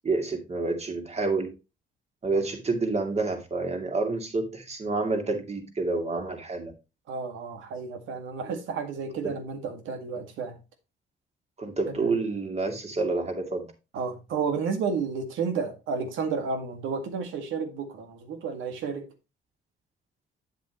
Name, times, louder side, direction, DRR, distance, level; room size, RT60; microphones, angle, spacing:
voice 1, 0.0-1.5 2.2-6.7 9.2-9.3 11.6-13.7, right 3 dB, 35° right, 2.5 m, -28 dB
voice 2, 7.1-10.6 12.0-12.1 13.9-19.1, right 5 dB, 85° right, 1.9 m, -31 dB
8.8 x 7.4 x 3.0 m
cardioid pair, 90°, 20 cm